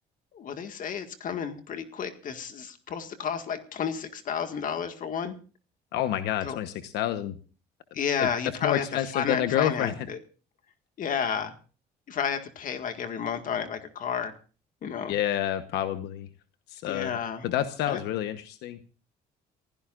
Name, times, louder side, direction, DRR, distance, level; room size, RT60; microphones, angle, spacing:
voice 1, 0.3-5.3 6.4-6.6 7.9-10.2 11.0-11.5 12.1-14.3 14.8-15.1 16.9-17.5 17.9-18.0, left 7 dB, 55° left, 7 dB, 1.9 m, -31 dB
voice 2, 5.9-7.4 8.2-8.3 8.6-10.0 15.1-16.3 16.7-17.2 17.4-18.8, left 11 dB, 85° left, 9 dB, 1.1 m, -28 dB
28.5 x 15.5 x 2.5 m, 0.37 s
cardioid pair, 110°, 17 cm